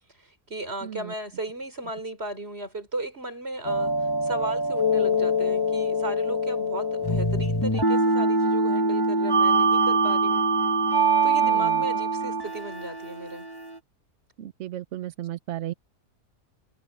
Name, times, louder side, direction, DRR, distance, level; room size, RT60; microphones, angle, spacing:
voice 1, 0.2-10.4 10.9-13.5, right 2 dB, 40° right, 5.0 m, -36 dB
voice 2, 0.8-1.1 11.4-11.7 14.4-15.7, right 13 dB, 65° right, 0.8 m, -34 dB
sound 1, 3.6-13.8, right 2 dB, 15° left, 1.8 m, -23 dB
omnidirectional pair, 1.6 m